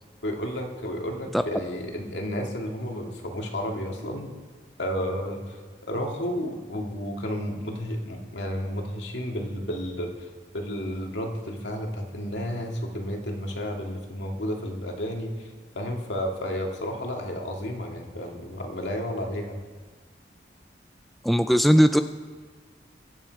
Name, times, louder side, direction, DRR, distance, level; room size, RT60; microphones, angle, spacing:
voice 1, 0.2-4.4 4.8-5.6 5.9-10.3 10.5-15.5 15.7-19.6, equal, 70° left, 1 dB, 2.2 m, -32 dB
voice 2, 21.2-22.0, equal, ahead, 8 dB, 0.3 m, -18 dB
23.0 x 8.8 x 4.7 m, 1.5 s
head